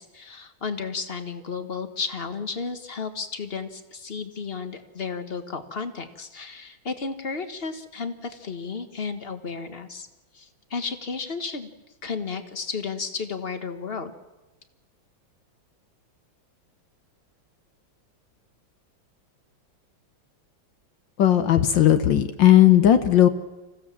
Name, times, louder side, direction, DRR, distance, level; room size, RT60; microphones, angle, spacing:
voice 1, 0.0-10.1 10.3-11.7 12.0-14.1, left 5 dB, 30° left, 9 dB, 1.4 m, -33 dB
voice 2, 21.2-23.3, left 11 dB, 70° left, 9 dB, 1.6 m, -16 dB
27.0 x 16.0 x 7.4 m, 1.1 s
omnidirectional pair, 2.2 m